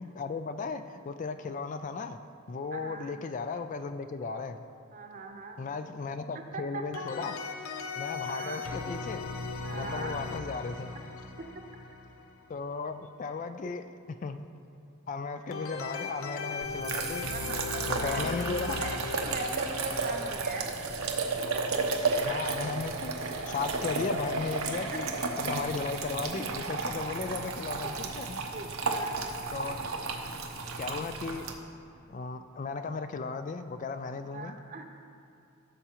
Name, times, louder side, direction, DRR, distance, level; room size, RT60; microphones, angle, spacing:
voice 1, 0.0-2.2 2.5-4.6 5.6-7.3 7.9-9.3 9.7-11.0 12.5-14.4 15.1-17.3 17.9-18.8 22.2-25.1 25.4-28.4 29.5-29.9 30.8-31.5 32.1-34.6, left 4 dB, 35° left, 9 dB, 0.3 m, -36 dB
voice 2, 2.7-3.1 4.9-5.6 6.5-6.8 8.3-8.6 9.6-10.2 10.9-11.0 17.3-18.3 18.8-20.7 21.5-21.6 24.9-25.2 27.8-28.0 28.5-29.2 29.8-29.9 34.1-34.8, right 3 dB, 40° right, 4 dB, 0.8 m, -40 dB
sound 1, 6.9-12.5 15.5-21.6, left 4 dB, 80° left, 0.7 m, -39 dB
sound 2, 16.6-31.5, right 3 dB, 90° right, 0.9 m, -33 dB
15.5 x 6.8 x 3.0 m, 2.6 s
head